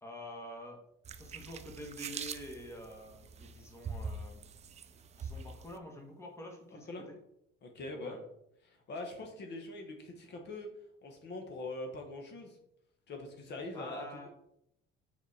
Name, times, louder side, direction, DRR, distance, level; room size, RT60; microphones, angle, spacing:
voice 1, 0.0-0.8 1.1-4.4 5.2-7.2 7.9-8.2 13.7-14.3, equal, 10° left, 1 dB, 1.5 m, -47 dB
sound 1, 1.0-5.8, right 5 dB, 30° right, 0.4 m, -44 dB
voice 2, 7.6-8.2 8.6-10.7 11.0-12.6 13.1-14.3, left 2 dB, 55° left, 3 dB, 1.3 m, -43 dB
6.0 x 5.0 x 4.2 m, 0.77 s
cardioid pair, 130°, 21 cm